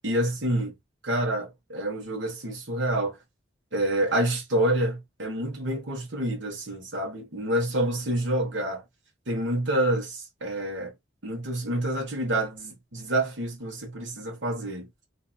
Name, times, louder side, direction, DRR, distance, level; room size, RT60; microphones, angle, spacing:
voice 1, 0.0-0.7 1.0-3.2 3.7-8.8 9.3-10.9 11.2-14.9, right 1 dB, 70° right, 1.4 m, -28 dB
2.9 x 2.8 x 2.4 m
head